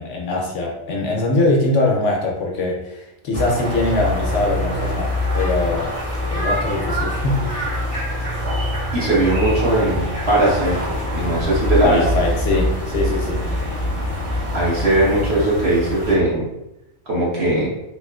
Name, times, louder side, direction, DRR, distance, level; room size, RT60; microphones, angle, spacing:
voice 1, 0.0-5.9 6.3-7.9 11.8-13.5, left 2 dB, 65° left, -1 dB, 0.8 m, -22 dB
sound 1, 3.3-16.2, left 1 dB, 30° right, 0.8 m, -25 dB
voice 2, 8.9-10.8 11.1-12.0 14.5-16.4 17.1-17.7, right 1 dB, 55° right, -5 dB, 1.1 m, -19 dB
sound 2, 11.4-16.3, equal, 80° right, 1.0 m, -27 dB
2.9 x 2.9 x 2.3 m, 0.89 s
omnidirectional pair, 1.4 m